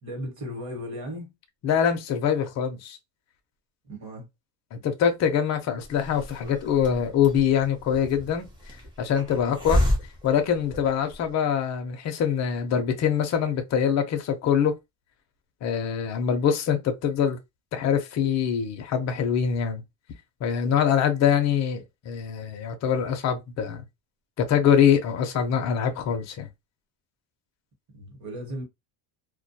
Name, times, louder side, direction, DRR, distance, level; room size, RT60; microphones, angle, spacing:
voice 1, 0.0-1.3 3.9-4.3 9.3-9.6 27.9-28.6, equal, 35° right, 1.0 m, -36 dB
voice 2, 1.6-3.0 4.7-8.5 9.0-9.8 10.2-14.7 15.6-17.4 17.7-19.8 20.4-23.8 24.4-26.5, left 8 dB, 35° left, 0.5 m, -24 dB
Hiss, 5.8-11.3, left 1 dB, 10° right, 0.6 m, -31 dB
2.2 x 2.2 x 2.6 m
cardioid pair, 160°, 50 cm